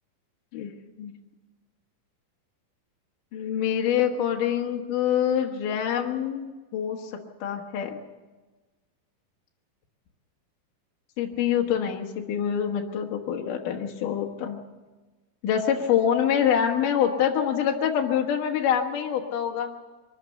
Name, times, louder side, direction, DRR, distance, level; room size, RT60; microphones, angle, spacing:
voice 1, 3.3-7.1 7.4-8.0 11.2-14.6 15.4-19.7, left 9 dB, 65° left, 1 dB, 3.0 m, -25 dB
24.0 x 13.5 x 8.1 m, 1.3 s
omnidirectional pair, 4.1 m